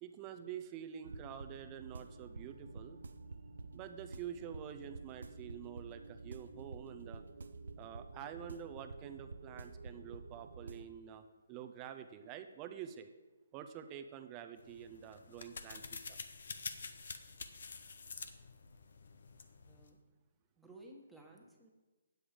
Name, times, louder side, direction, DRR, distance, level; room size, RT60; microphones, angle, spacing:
voice 1, 0.0-3.0 3.7-7.2 7.8-13.1 13.5-15.8 16.1-16.2, right 9 dB, 25° right, 8 dB, 0.6 m, -48 dB
sound 1, 1.0-10.9, right 3 dB, 75° right, 0.6 m, -50 dB
sound 2, 14.6-19.9, left 4 dB, 65° left, 0.8 m, -48 dB
voice 2, 19.7-20.0 20.6-21.7, right 1 dB, 5° right, -2 dB, 1.3 m, -56 dB
8.5 x 7.8 x 4.9 m, 1.2 s
figure-of-eight pair, 145°, 0 cm